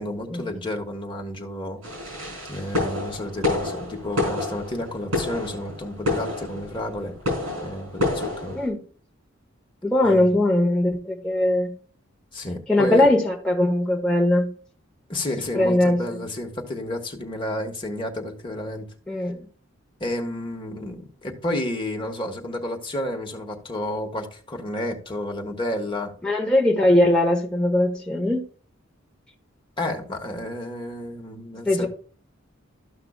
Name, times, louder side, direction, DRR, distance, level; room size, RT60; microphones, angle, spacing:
voice 1, 0.0-1.8 2.5-7.2 7.6-8.6 10.0-10.3 12.3-13.1 15.1-18.9 20.0-26.1 29.8-31.9, left 1 dB, 25° left, 2 dB, 1.5 m, -31 dB
sound 1, 1.8-8.7, left 2 dB, 75° right, 4.4 m, -29 dB
voice 2, 9.8-11.7 12.7-14.5 15.5-16.3 19.1-19.5 26.2-28.4 31.6-31.9, left 1 dB, 5° left, -1 dB, 1.0 m, -20 dB
13.5 x 5.8 x 2.3 m, 0.42 s
head